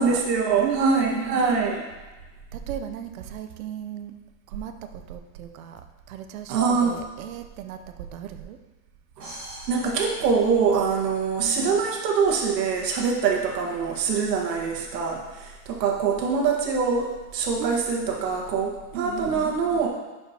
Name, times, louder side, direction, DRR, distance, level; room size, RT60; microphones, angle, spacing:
voice 1, 0.0-1.8 6.5-7.0 9.2-9.3 9.7-19.9, right 5 dB, 85° right, 0 dB, 1.7 m, -24 dB
voice 2, 0.6-1.4 2.5-4.1 4.5-8.6 11.4-11.9 17.6-17.8 18.9-19.5, right 10 dB, 60° right, 8 dB, 0.7 m, -35 dB
sound 1, 9.2-11.2, right 1 dB, 25° right, 2.5 m, -43 dB
10.5 x 5.1 x 2.9 m, 1.2 s
supercardioid pair, 180°, 48 cm